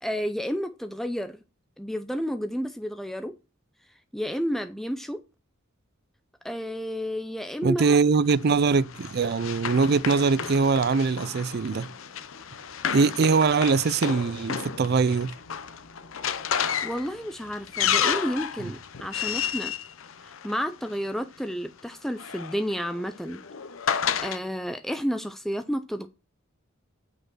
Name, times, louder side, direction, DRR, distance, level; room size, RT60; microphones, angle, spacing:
voice 1, 0.0-1.4 1.8-3.4 4.1-5.2 6.4-8.0 16.6-19.7 20.2-23.4 24.2-26.1, equal, ahead, 0.5 m, -31 dB
voice 2, 7.6-11.9 12.9-15.3 18.6-18.7, right 4 dB, 50° right, 0.4 m, -22 dB
Run, 8.3-20.9 21.9-24.4, left 8 dB, 75° left, 0.7 m, -32 dB
8.7 x 5.1 x 6.1 m
head